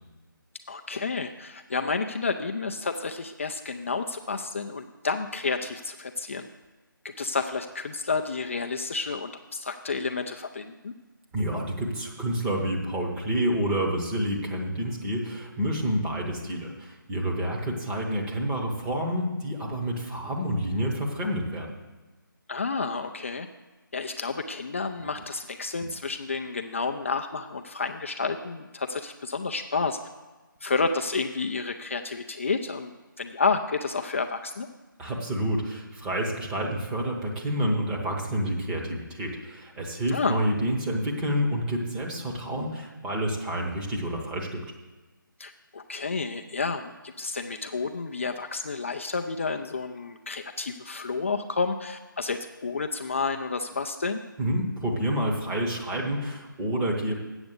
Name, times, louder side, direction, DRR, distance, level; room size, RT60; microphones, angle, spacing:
voice 1, 0.7-6.5 7.0-10.9 22.5-23.5 23.9-30.0 30.6-32.9 33.2-34.7 40.1-40.4 45.4-54.2, left 4 dB, 35° left, 5 dB, 0.4 m, -30 dB
voice 2, 11.3-21.8 25.8-25.9 35.0-44.6 54.4-57.1, equal, 5° right, -2 dB, 0.9 m, -28 dB
7.9 x 6.8 x 8.1 m, 1.2 s
figure-of-eight pair, 155°, 12 cm